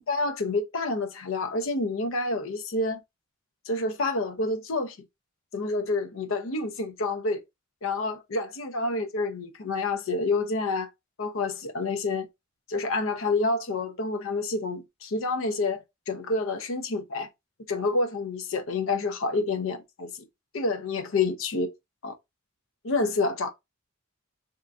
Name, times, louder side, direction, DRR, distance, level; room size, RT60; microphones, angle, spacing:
voice 1, 0.1-3.0 3.7-5.0 5.5-7.4 7.8-10.9 11.2-12.3 12.7-17.3 17.7-20.2 20.5-21.7 22.0-22.1 22.8-23.5, left 3 dB, 70° left, 0.6 m, -28 dB
3.4 x 2.9 x 2.4 m
head